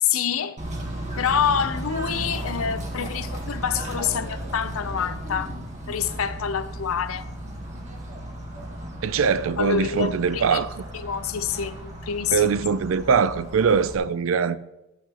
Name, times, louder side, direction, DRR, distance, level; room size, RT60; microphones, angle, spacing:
voice 1, 0.0-0.6 1.2-5.5 5.9-7.3 9.6-10.6 10.9-12.5, left 8 dB, 80° left, 0.6 m, -27 dB
Bird / Train, 0.6-14.0, right 1 dB, 35° right, 1.8 m, -35 dB
voice 2, 9.0-10.7 12.3-14.6, right 6 dB, 70° right, 0.4 m, -22 dB
13.0 x 8.3 x 2.9 m
head